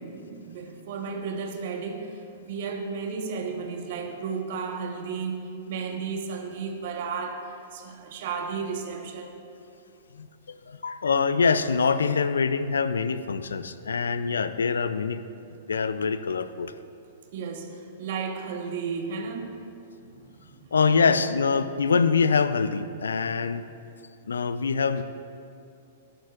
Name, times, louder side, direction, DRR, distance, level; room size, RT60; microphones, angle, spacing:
voice 1, 0.0-9.3 17.3-19.6 20.0-20.7 21.0-21.2, right 5 dB, 60° right, 4 dB, 1.2 m, -34 dB
voice 2, 10.1-15.2 15.7-16.7 20.7-23.7 24.2-25.0, left 5 dB, 85° left, 13 dB, 0.4 m, -24 dB
13.0 x 11.0 x 2.5 m, 2.6 s
hypercardioid pair, 115°, 0 cm